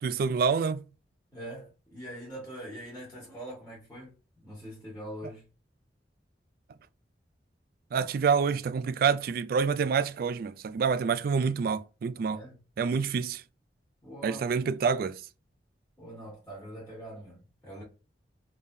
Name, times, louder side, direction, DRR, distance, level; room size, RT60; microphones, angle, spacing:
voice 1, 0.0-0.9 7.9-12.4 12.8-13.4 14.2-15.2, right 5 dB, 55° right, 0.3 m, -27 dB
voice 2, 1.3-5.4 12.3-12.6 14.0-14.5 16.0-17.8, right 1 dB, 10° left, 1.7 m, -43 dB
3.5 x 3.4 x 2.7 m
head